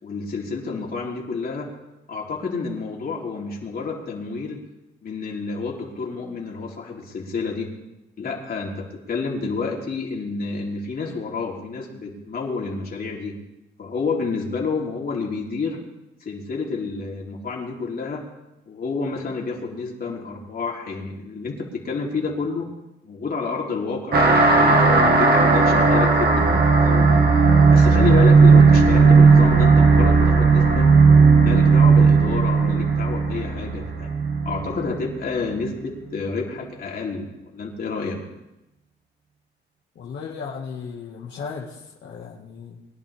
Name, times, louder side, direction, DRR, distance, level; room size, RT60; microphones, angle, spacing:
voice 1, 0.0-1.7 2.1-4.6 5.0-7.7 8.2-13.4 13.8-15.8 16.2-18.2 18.7-22.7 23.0-27.2 27.7-30.9 31.4-34.1 34.5-38.2, left 4 dB, 50° left, -1 dB, 3.5 m, -29 dB
sound 1, 24.1-35.1, right 4 dB, 55° right, 2.2 m, -15 dB
voice 2, 40.0-42.8, left 5 dB, 65° left, -3 dB, 1.9 m, -35 dB
22.5 x 11.0 x 3.6 m, 0.96 s
cardioid pair, 90°, 20 cm